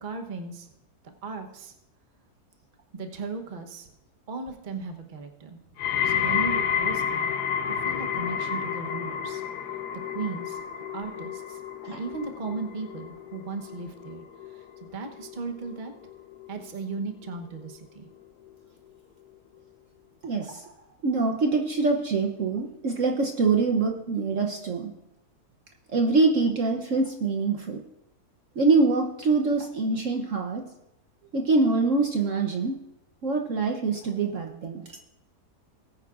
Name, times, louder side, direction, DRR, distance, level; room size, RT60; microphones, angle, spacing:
voice 1, 0.0-0.7 1.2-1.7 2.9-3.9 4.3-5.6 6.0-7.3 7.7-9.4 10.1-10.6 10.9-11.6 11.9-14.2 14.5-14.7 14.9-15.9 16.5-18.1 34.9-35.0, right 4 dB, 35° right, 4 dB, 1.0 m, -36 dB
sound 1, 5.8-16.9 17.2-17.7 18.5-18.6, left 8 dB, 80° left, 1.2 m, -31 dB
voice 2, 20.2-20.7 21.0-24.9 25.9-27.8 28.6-30.6 31.3-32.8 33.2-34.8, right 3 dB, 60° right, 2 dB, 1.1 m, -24 dB
19.5 x 9.3 x 2.5 m, 0.88 s
omnidirectional pair, 1.7 m